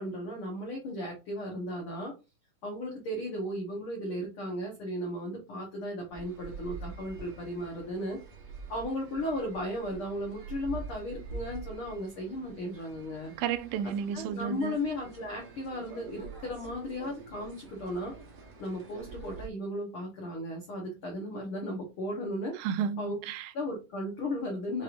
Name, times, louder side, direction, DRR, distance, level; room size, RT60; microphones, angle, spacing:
voice 1, 0.0-2.1 2.6-8.2 8.7-13.3 14.1-18.1 18.6-22.5 23.0-23.2 23.5-24.8, left 1 dB, 75° left, 1.2 m, -35 dB
sound 1, 6.1-19.5, right 4 dB, 60° right, 2.3 m, -46 dB
voice 2, 13.4-14.8 22.5-23.5, right 8 dB, 85° right, 2.3 m, -32 dB
6.7 x 3.0 x 2.5 m
omnidirectional pair, 4.1 m